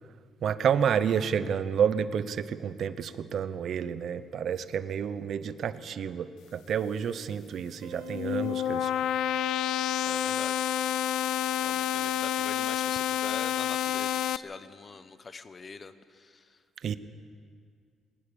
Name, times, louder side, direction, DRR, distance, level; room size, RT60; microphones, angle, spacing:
voice 1, 0.4-8.9 16.8-17.0, right 8 dB, 50° right, 13 dB, 0.8 m, -29 dB
sound 1, 7.8-12.9, right 8 dB, 80° right, 0.8 m, -45 dB
sound 2, 7.9-14.4, left 13 dB, 75° left, 0.5 m, -29 dB
voice 2, 10.0-10.5 11.6-16.6, left 4 dB, 25° left, 12 dB, 0.9 m, -44 dB
21.5 x 19.0 x 7.1 m, 2.2 s
cardioid pair, 150°, 0 cm